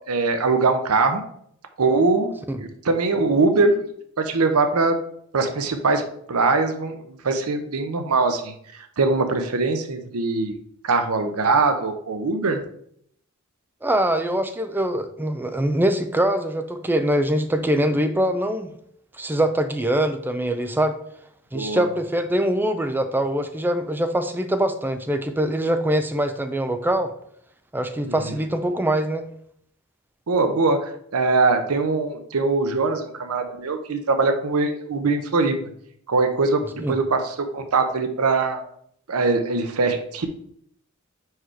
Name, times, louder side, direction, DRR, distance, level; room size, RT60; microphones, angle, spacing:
voice 1, 0.1-1.2 1.8-2.3 2.6-3.7 4.2-5.0 5.3-8.5 9.0-10.5 10.8-12.6 21.5-21.8 28.1-28.3 30.3-35.5 36.1-38.6 39.1-40.3, right 3 dB, 85° right, 7 dB, 0.7 m, -22 dB
voice 2, 13.8-18.7 19.1-21.0 21.5-27.1 27.7-29.2 36.8-37.0, right 1 dB, 10° right, 8 dB, 0.4 m, -23 dB
4.8 x 4.7 x 4.4 m, 0.67 s
head